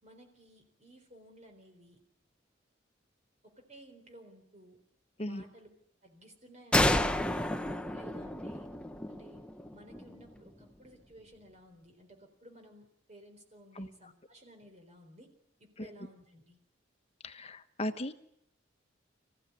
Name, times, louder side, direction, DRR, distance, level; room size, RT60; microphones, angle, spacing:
voice 1, 0.0-2.0 3.4-4.8 5.2-5.7 6.0-7.5 7.9-8.7 9.1-9.4 9.7-15.3 15.6-16.6, right 1 dB, 35° right, 4 dB, 4.1 m, -56 dB
sound 1, 6.7-10.3, left 1 dB, 5° left, 1.0 m, -31 dB
voice 2, 17.2-18.1, left 1 dB, 35° left, 9 dB, 1.3 m, -37 dB
26.5 x 16.0 x 9.6 m, 0.76 s
head